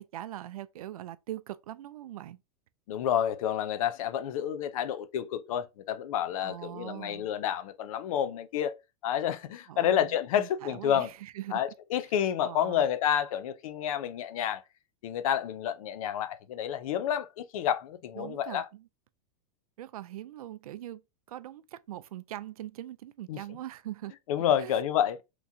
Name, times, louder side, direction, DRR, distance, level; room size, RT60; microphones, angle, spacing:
voice 1, 0.0-2.4 6.4-7.3 9.7-11.6 11.9-12.0 12.4-12.9 18.2-18.9 19.8-21.0 21.3-24.1 24.6-24.7, right 13 dB, 90° right, 0.4 m, -42 dB
voice 2, 2.9-8.7 9.0-11.1 11.5-14.6 15.0-18.7 23.3-23.4 24.3-25.2, left 10 dB, 75° left, 0.6 m, -29 dB
3.5 x 3.0 x 2.7 m
supercardioid pair, 125°, 18 cm